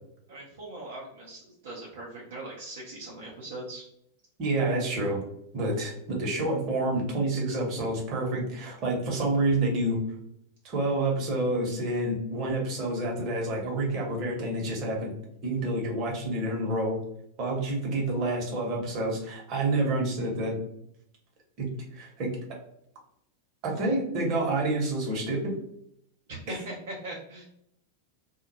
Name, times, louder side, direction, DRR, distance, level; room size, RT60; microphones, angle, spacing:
voice 1, 0.3-3.8 26.3-27.4, right 2 dB, 60° right, -4 dB, 0.5 m, -40 dB
voice 2, 4.4-5.2 5.5-10.0 10.6-15.1 15.4-17.0 17.4-20.6 21.6-21.7 21.9-22.3 23.6-25.5 26.5-26.6, right 2 dB, 35° right, -1 dB, 0.8 m, -28 dB
2.1 x 2.0 x 2.9 m, 0.74 s
figure-of-eight pair, 90°, 0 cm